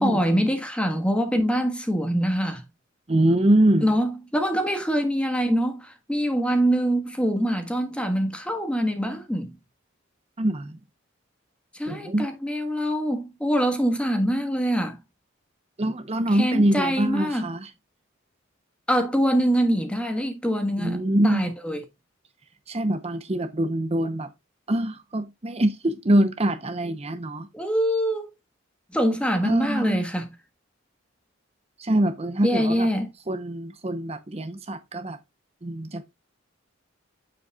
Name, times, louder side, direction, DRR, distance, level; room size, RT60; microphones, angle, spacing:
voice 1, 0.0-2.6 3.8-9.5 11.7-15.0 16.3-17.5 18.9-21.8 27.5-28.3 28.9-30.3 32.4-33.1, equal, 5° left, 1.4 m, -24 dB
voice 2, 3.1-3.9 10.4-10.8 11.9-12.3 15.8-17.7 20.8-21.5 22.7-24.3 24.7-27.5 29.4-30.1 31.8-32.9 33.3-35.2 35.6-36.0, right 1 dB, 30° right, 0.7 m, -24 dB
8.1 x 7.6 x 2.3 m
head